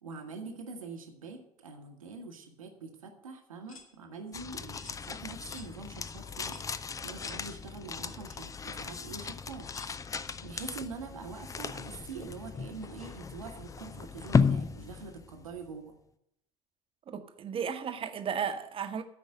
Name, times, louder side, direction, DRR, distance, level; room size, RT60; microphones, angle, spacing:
voice 1, 0.0-6.7 7.0-9.9 10.4-15.9, right 4 dB, 75° right, 1.6 m, -44 dB
sound 1, 3.7-3.9 4.8-5.0 5.5-5.7 6.5-6.7 7.2-7.4 8.3-8.4 9.7-10.0, left 3 dB, 75° left, 1.7 m, -50 dB
sound 2, 4.3-15.7, left 5 dB, 20° left, 0.5 m, -35 dB
voice 2, 17.1-19.0, right 7 dB, 30° right, 1.1 m, -34 dB
13.0 x 5.3 x 7.8 m
figure-of-eight pair, 60°, 17 cm